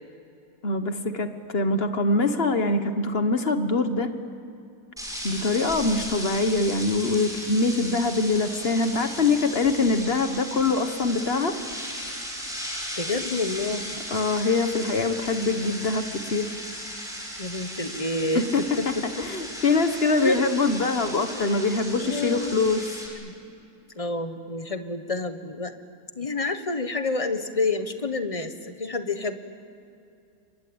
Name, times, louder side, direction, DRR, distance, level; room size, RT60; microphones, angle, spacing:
voice 1, 0.6-4.1 5.2-11.5 14.1-16.5 18.5-18.6 19.2-22.9, left 3 dB, 40° left, 8 dB, 1.5 m, -24 dB
sound 1, 5.0-23.1, equal, ahead, 6.5 m, -36 dB
voice 2, 13.0-13.8 17.4-19.3 20.2-20.4 21.3-21.4 22.0-22.6 23.2-23.3 23.9-25.7 26.2-29.4, left 3 dB, 25° left, 8 dB, 1.2 m, -29 dB
28.5 x 23.0 x 8.8 m, 2.5 s
omnidirectional pair, 1.7 m